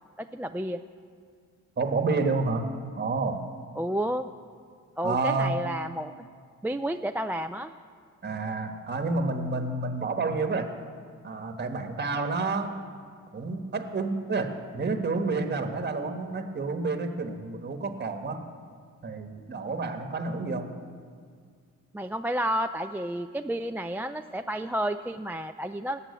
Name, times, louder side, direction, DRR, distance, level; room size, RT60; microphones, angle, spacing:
voice 1, 0.2-0.8 3.8-4.3 5.0-6.1 6.6-7.7 21.9-26.0, right 1 dB, 5° right, 7 dB, 0.3 m, -31 dB
voice 2, 1.8-2.7 3.0-3.4 5.0-5.6 8.2-10.7 11.2-12.8 13.3-18.4 19.0-20.7, right 3 dB, 35° right, 6 dB, 1.3 m, -29 dB
18.5 x 7.5 x 8.4 m, 2.1 s
cardioid pair, 105°, 30 cm